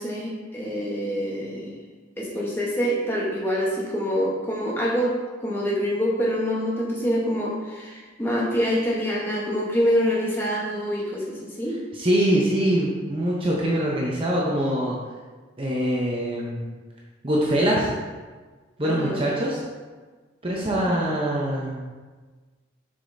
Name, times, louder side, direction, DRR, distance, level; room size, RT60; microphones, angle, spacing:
voice 1, 0.0-1.8 2.2-5.2 5.4-11.8 18.8-19.3, equal, 10° left, -4 dB, 1.0 m, -26 dB
voice 2, 11.9-15.0 15.6-16.6 17.2-17.9 18.8-19.6 20.4-21.8, right 1 dB, 25° right, -4 dB, 0.7 m, -23 dB
7.0 x 5.1 x 2.6 m, 1.4 s
head